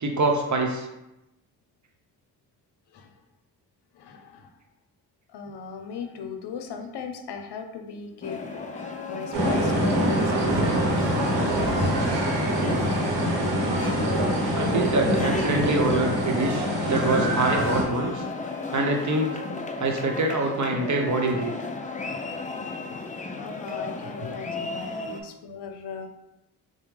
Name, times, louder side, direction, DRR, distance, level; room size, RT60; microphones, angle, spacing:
voice 1, 0.0-0.9 14.5-18.1 18.7-19.4 19.8-21.5, right 2 dB, 45° right, 2 dB, 0.8 m, -25 dB
voice 2, 3.9-4.6 5.3-12.5 23.4-26.1, left 6 dB, 75° left, 5 dB, 0.6 m, -38 dB
Harp, 8.0-20.1 20.5-20.6 21.4-21.5, left 3 dB, 40° left, 1.1 m, -42 dB
sound 1, 8.2-25.2, left 3 dB, 20° left, 0.4 m, -35 dB
sound 2, 9.3-17.8, right 1 dB, 80° right, 1.0 m, -24 dB
4.9 x 2.2 x 3.2 m, 0.91 s
cardioid pair, 55°, 41 cm